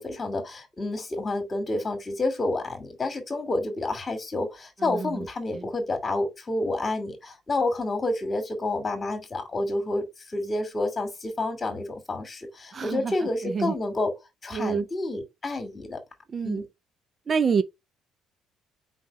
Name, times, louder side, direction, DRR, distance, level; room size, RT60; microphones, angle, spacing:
voice 1, 0.0-14.1 14.4-16.0 16.4-16.6, left 2 dB, 30° left, 2.4 m, -29 dB
voice 2, 4.8-5.3 5.5-5.7 12.7-13.2 13.4-13.7 14.5-14.9 16.3-16.6 17.3-17.6, right 6 dB, 40° right, 0.5 m, -27 dB
4.9 x 3.9 x 5.2 m
cardioid pair, 85°, 0 cm